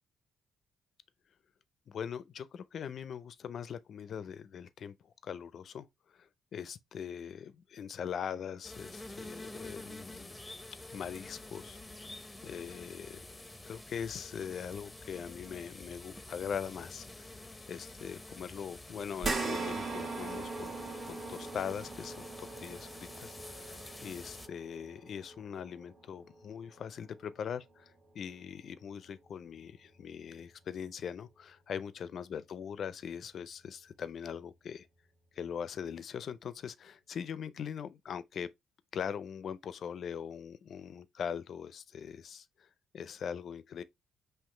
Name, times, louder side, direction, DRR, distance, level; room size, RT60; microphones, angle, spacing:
voice 1, 1.9-5.9 6.2-10.4 10.9-12.1 12.4-13.3 13.6-17.4 17.7-20.7 21.0-34.9 35.4-38.5 38.9-42.7 42.9-43.8, left 7 dB, 60° left, 0.5 m, -41 dB
sound 1, 8.6-24.5, left 2 dB, 15° left, 0.6 m, -48 dB
sound 2, 19.2-27.8 28.3-28.4 29.8-29.9, right 3 dB, 40° right, 1.4 m, -41 dB
5.7 x 2.8 x 3.1 m
cardioid pair, 90°, 0 cm